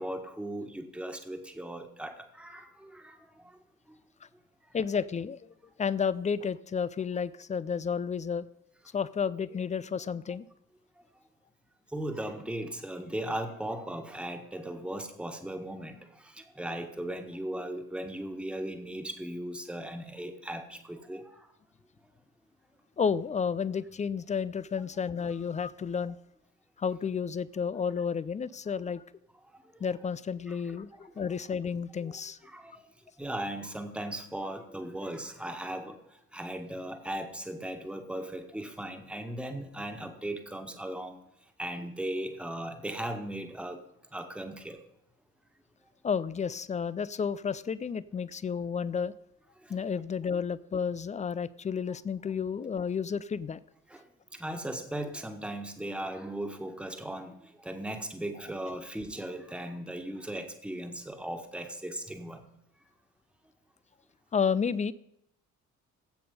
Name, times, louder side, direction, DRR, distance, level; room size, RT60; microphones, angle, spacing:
voice 1, 0.0-4.0 4.6-4.8 11.0-11.1 11.9-21.5 25.3-25.4 29.5-29.8 30.5-30.8 31.1-31.3 32.0-32.1 32.4-43.8 44.1-44.8 49.6-49.8 50.3-50.4 53.9-54.1 54.3-62.5, right 1 dB, ahead, 5 dB, 1.6 m, -38 dB
voice 2, 4.7-8.5 8.9-10.5 23.0-26.2 26.8-29.0 29.8-32.4 46.0-49.1 49.7-53.6 64.3-64.9, left 6 dB, 20° left, 18 dB, 0.4 m, -31 dB
15.0 x 8.4 x 5.4 m, 0.79 s
figure-of-eight pair, 45°, 42 cm